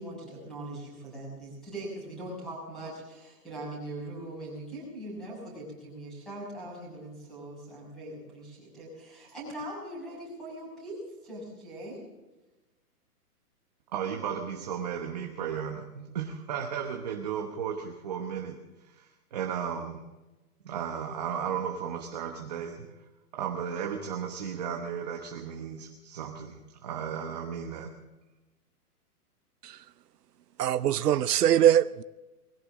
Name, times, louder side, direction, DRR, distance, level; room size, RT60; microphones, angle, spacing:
voice 1, 0.0-12.0, right 1 dB, ahead, 6.4 m, -41 dB
voice 2, 13.9-20.0 20.6-22.9 23.3-27.9, right 7 dB, 25° right, 1.0 m, -35 dB
voice 3, 30.6-32.0, right 11 dB, 80° right, 0.7 m, -22 dB
21.0 x 16.0 x 3.7 m
hypercardioid pair, 175°, 46 cm